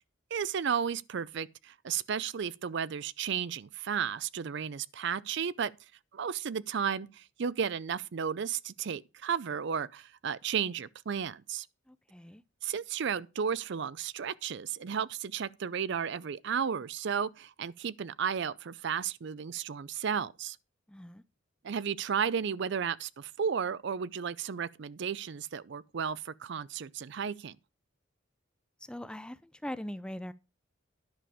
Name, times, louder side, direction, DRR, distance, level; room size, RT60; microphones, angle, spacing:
voice 1, 0.3-5.7 6.1-11.7 12.6-20.6 21.6-27.6, right 7 dB, 60° right, 0.4 m, -33 dB
voice 2, 11.9-12.4 20.9-21.2 28.9-30.3, left 1 dB, 5° left, 0.4 m, -41 dB
10.5 x 6.9 x 4.9 m
head